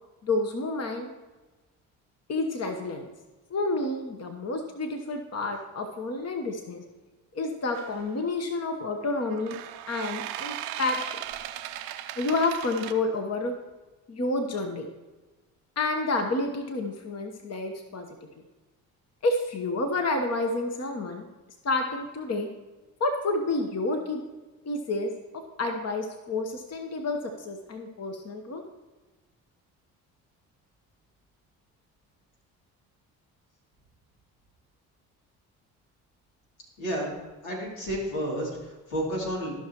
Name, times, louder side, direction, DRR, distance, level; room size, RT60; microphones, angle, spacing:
voice 1, 0.2-1.1 2.3-3.1 3.5-6.8 7.3-9.6 9.9-11.0 12.2-13.5 14.1-14.9 15.8-18.1 19.2-21.3 21.6-22.5 23.0-24.2 24.7-28.6, left 2 dB, 40° left, 4 dB, 1.1 m, -29 dB
sound 1, 7.7-8.0 9.3-12.9, right 12 dB, 85° right, 0.7 m, -37 dB
voice 2, 36.8-37.1 37.4-39.5, equal, 85° left, -4 dB, 3.0 m, -31 dB
15.0 x 5.9 x 3.0 m, 1.2 s
hypercardioid pair, 60°, 40 cm